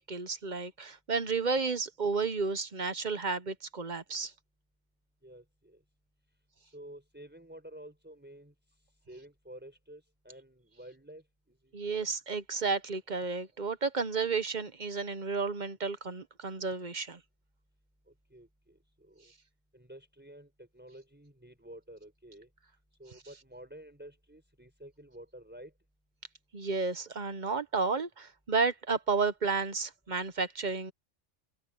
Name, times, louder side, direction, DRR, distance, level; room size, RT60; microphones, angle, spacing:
voice 1, 0.0-4.3 11.7-17.2 26.5-30.9, right 4 dB, 40° right, 0.9 m, -32 dB
voice 2, 5.2-5.8 6.6-8.5 9.1-11.7 12.0-12.1 18.1-19.3 19.7-22.5 23.0-25.7, right 1 dB, 10° right, 4.9 m, -51 dB
open air
omnidirectional pair, 1.2 m